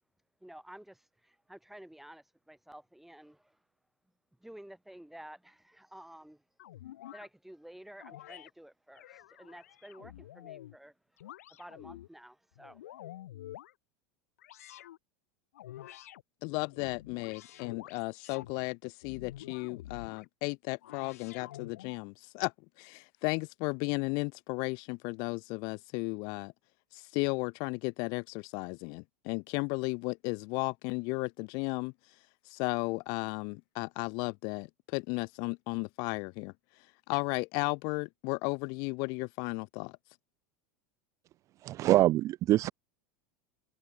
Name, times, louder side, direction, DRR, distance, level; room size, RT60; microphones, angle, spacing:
voice 1, 0.4-3.6 4.4-6.4 7.1-10.9 11.6-13.2, right 1 dB, 5° right, 6.1 m, -52 dB
sound 1, 6.6-7.3 8.0-8.5 8.9-10.8 11.2-12.1 12.6-13.7 14.4-15.0 15.5-16.2 16.7-18.5 19.0-20.3 20.8-22.0, left 13 dB, 80° left, 1.7 m, -48 dB
voice 2, 16.4-26.5 26.9-31.9 32.4-36.5 37.1-40.0, left 32 dB, 60° left, 0.9 m, -34 dB
voice 3, 41.6-42.7, right 15 dB, 40° right, 0.5 m, -24 dB
hypercardioid pair, 100°, 8 cm